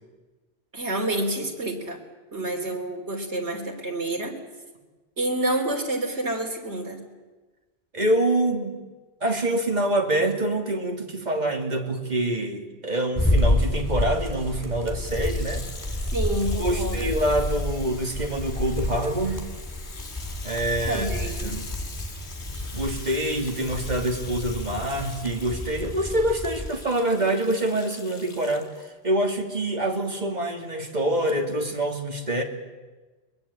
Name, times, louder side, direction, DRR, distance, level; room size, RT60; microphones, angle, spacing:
voice 1, 0.7-2.0 2.3-4.3 5.2-7.0 16.1-17.2 20.9-21.6, right 1 dB, 70° right, 2 dB, 3.9 m, -28 dB
voice 2, 7.9-8.7 9.2-15.6 16.6-19.4 20.4-21.1 21.4-21.6 22.7-28.7 29.0-32.4, right 1 dB, 40° right, 3 dB, 2.8 m, -26 dB
sound 1, 13.1-26.7, left 1 dB, 15° left, 2.8 m, -29 dB
Water tap faucet / Sink (filling or washing), 14.9-28.9 29.6-29.7, left 4 dB, 70° left, 1.9 m, -43 dB
22.5 x 21.5 x 8.6 m, 1.3 s
omnidirectional pair, 1.2 m